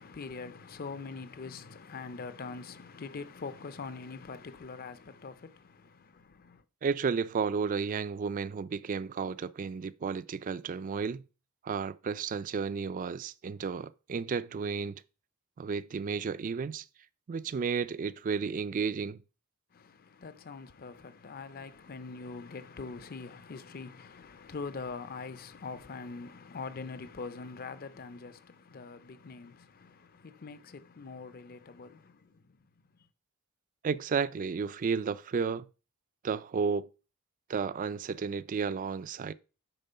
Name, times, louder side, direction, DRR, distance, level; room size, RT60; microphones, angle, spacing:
voice 1, 0.0-6.6 19.7-32.6, left 4 dB, 40° left, 0.5 m, -43 dB
voice 2, 6.8-11.2 11.6-15.0 15.6-16.9 17.3-19.2 33.8-35.7 36.2-36.9 37.5-39.3, right 5 dB, 35° right, 0.3 m, -32 dB
8.9 x 3.7 x 5.5 m
head